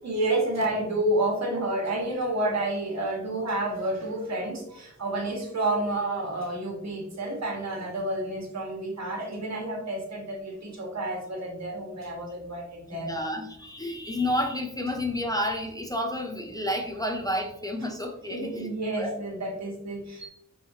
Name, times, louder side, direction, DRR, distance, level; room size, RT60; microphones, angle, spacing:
voice 1, 0.0-13.1 18.3-20.3, right 1 dB, 60° right, -2 dB, 1.3 m, -30 dB
voice 2, 12.9-18.7 19.0-19.1, left 1 dB, 10° left, 1 dB, 0.4 m, -30 dB
4.5 x 3.2 x 2.7 m, 0.80 s
wide cardioid pair, 125°, 31 cm